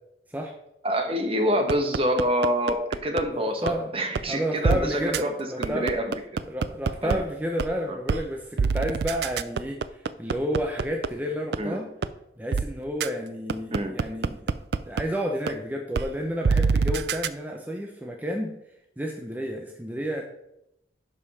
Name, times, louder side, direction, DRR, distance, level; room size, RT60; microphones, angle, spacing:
voice 1, 0.8-5.3 5.6-6.1 7.0-7.2 7.9-8.0 11.6-11.8 13.7-13.9, equal, 35° right, 5 dB, 1.3 m, -26 dB
sound 1, 1.7-3.2 3.7-3.8 4.2-4.3 4.6-4.8 5.1-5.2 5.6-7.2 7.6-7.7 8.1-8.2 8.6-11.1 11.5-11.6 12.0-12.1 12.5-12.6 13.0-13.1 13.5-15.0 15.5-15.6 16.0-16.1 16.4-17.3, right 5 dB, 65° right, 0.4 m, -24 dB
voice 2, 3.2-3.9 4.3-5.9 6.5-11.9 12.4-14.5 14.9-18.5 19.0-20.2, equal, 10° right, 1 dB, 0.8 m, -31 dB
11.0 x 5.5 x 4.2 m, 0.81 s
head